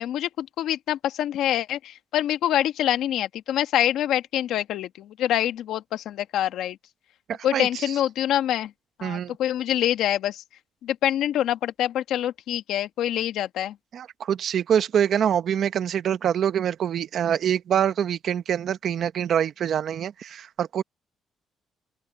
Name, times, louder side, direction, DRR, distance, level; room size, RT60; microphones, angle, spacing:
voice 1, 0.0-6.8 7.4-8.7 9.0-10.4 10.8-13.8, left 11 dB, 85° left, 1.4 m, -25 dB
voice 2, 7.3-7.9 9.0-9.3 13.9-20.8, right 9 dB, 65° right, 1.0 m, -25 dB
open air
cardioid pair, 90°, 0 cm